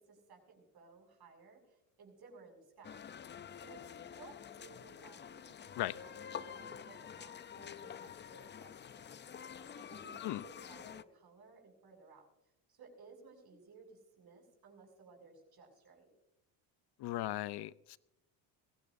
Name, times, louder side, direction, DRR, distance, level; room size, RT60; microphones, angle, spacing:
voice 1, 0.0-3.0 3.6-12.3 12.7-16.1, right 4 dB, 50° right, 7.1 m, -58 dB
sound 1, 2.8-11.0, left 8 dB, 25° left, 0.5 m, -48 dB
voice 2, 17.0-18.0, left 16 dB, 55° left, 0.7 m, -37 dB
22.5 x 16.5 x 2.7 m
supercardioid pair, 85°, 48 cm